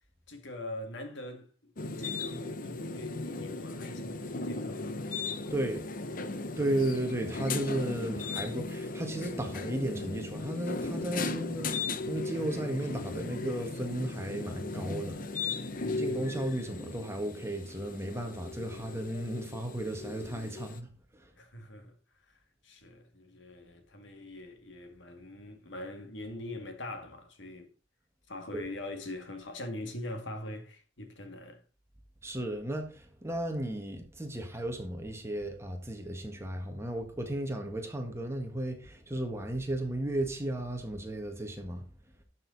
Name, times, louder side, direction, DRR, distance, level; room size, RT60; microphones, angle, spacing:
voice 1, 0.3-1.7 2.0-5.3 15.8-16.4 21.4-22.0 22.3-27.7 28.3-31.6, left 1 dB, 70° left, 2.1 m, -43 dB
sound 1, 1.8-20.8, left 3 dB, 45° left, 0.8 m, -37 dB
voice 2, 5.5-5.9 6.6-15.6 16.0-21.3 28.5-28.6 32.2-41.9, right 1 dB, 15° right, 1.8 m, -34 dB
12.0 x 6.6 x 4.1 m
head